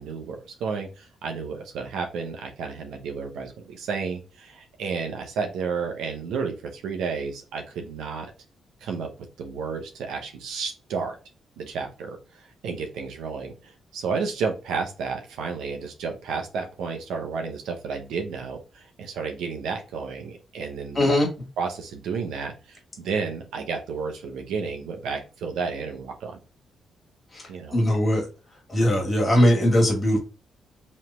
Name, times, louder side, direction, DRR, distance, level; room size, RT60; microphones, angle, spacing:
voice 1, 0.0-8.3 8.8-11.2 11.6-12.2 12.6-21.2 21.6-26.4 27.5-27.8, right 5 dB, 90° right, 3 dB, 0.8 m, -32 dB
voice 2, 21.0-21.3 27.3-27.4 27.7-28.2 28.7-30.2, left 1 dB, 25° left, 0 dB, 1.8 m, -20 dB
3.3 x 2.9 x 4.2 m, 0.32 s
cardioid pair, 80°, 0 cm